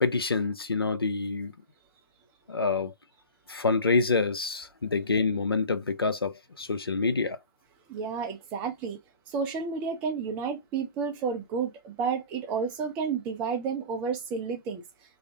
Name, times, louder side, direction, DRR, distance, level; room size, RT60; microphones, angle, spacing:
voice 1, 0.0-1.5 2.5-2.9 3.5-7.4, left 4 dB, 85° left, 0.5 m, -27 dB
voice 2, 7.9-9.0 9.3-14.8, right 5 dB, 10° right, 0.4 m, -31 dB
2.4 x 2.1 x 2.6 m
figure-of-eight pair, 140°, 12 cm